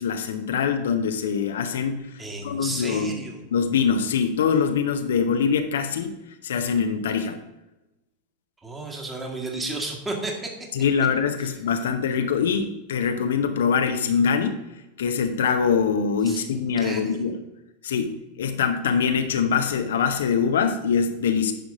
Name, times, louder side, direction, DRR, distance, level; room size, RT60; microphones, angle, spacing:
voice 1, 0.0-2.1 2.4-3.1 3.5-6.1 6.4-7.4 10.7-14.6 15.0-17.4 17.8-21.5, left 6 dB, 60° left, 7 dB, 0.7 m, -23 dB
voice 2, 2.2-3.4 8.6-10.5 16.3-17.2, right 2 dB, 15° right, 1 dB, 1.9 m, -33 dB
10.0 x 6.0 x 3.8 m, 0.99 s
figure-of-eight pair, 90°, 0 cm